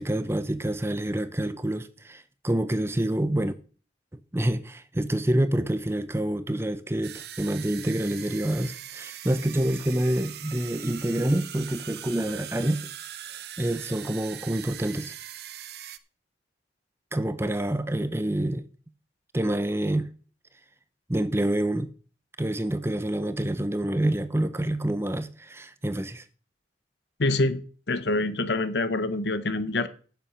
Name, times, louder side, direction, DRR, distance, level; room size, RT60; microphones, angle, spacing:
voice 1, 0.0-3.5 4.3-12.8 13.6-15.1 17.1-18.6 19.3-20.1 21.1-21.9 22.4-26.2, right 1 dB, 15° right, 0.6 m, -27 dB
sound 1, 7.0-16.0, right 11 dB, 60° right, 0.7 m, -41 dB
voice 2, 27.2-27.6 27.9-29.9, left 2 dB, 70° left, 0.9 m, -25 dB
10.5 x 7.0 x 6.1 m
head